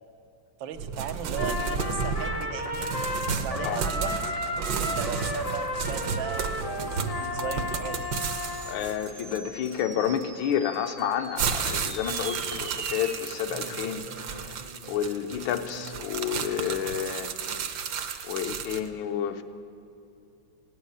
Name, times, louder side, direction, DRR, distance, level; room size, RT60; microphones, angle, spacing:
voice 1, 0.6-3.0 3.4-4.2 4.7-8.0 15.7-16.0, right 8 dB, 80° right, 7 dB, 1.5 m, -37 dB
sound 1, 0.8-10.2 10.9-18.9, right 6 dB, 65° right, 1.3 m, -33 dB
Trumpet, 1.3-8.9, left 2 dB, 65° left, 0.3 m, -33 dB
sound 2, 6.0-16.7, right 4 dB, 35° right, 0.7 m, -44 dB
voice 2, 8.7-14.5 14.9-17.3 18.3-19.4, left 9 dB, 80° left, 9 dB, 1.5 m, -30 dB
17.0 x 7.9 x 9.7 m, 2.6 s
omnidirectional pair, 2.1 m